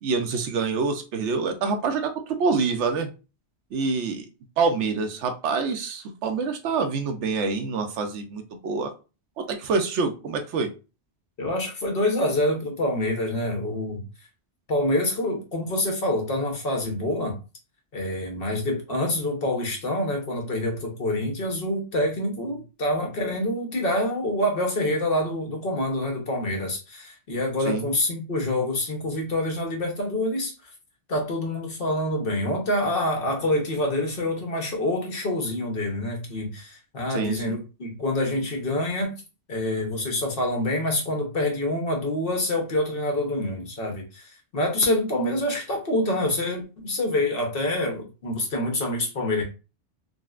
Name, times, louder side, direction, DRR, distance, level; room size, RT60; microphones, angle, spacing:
voice 1, 0.0-3.1 3.7-4.3 4.6-8.9 9.4-10.7 27.7-27.9 37.1-37.6, right 4 dB, 85° right, 6 dB, 0.9 m, -26 dB
voice 2, 11.4-14.0 14.7-17.3 17.9-30.5 31.1-39.1 39.5-49.4, left 1 dB, 55° left, 2 dB, 1.0 m, -26 dB
3.8 x 2.1 x 2.3 m, 0.32 s
omnidirectional pair, 1.2 m